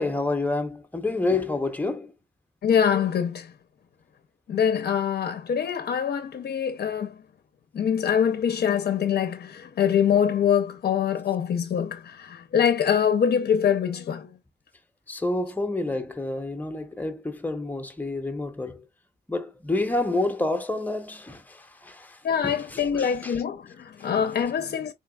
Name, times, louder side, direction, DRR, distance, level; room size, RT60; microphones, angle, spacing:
voice 1, 0.0-2.1 15.1-18.9 19.3-23.4 24.0-24.1, left 2 dB, 10° left, 0.7 m, -29 dB
voice 2, 2.6-3.5 4.5-7.2 7.7-14.3 22.2-24.9, left 8 dB, 65° left, 0.6 m, -24 dB
3.8 x 3.4 x 2.2 m
wide cardioid pair, 120°, 17 cm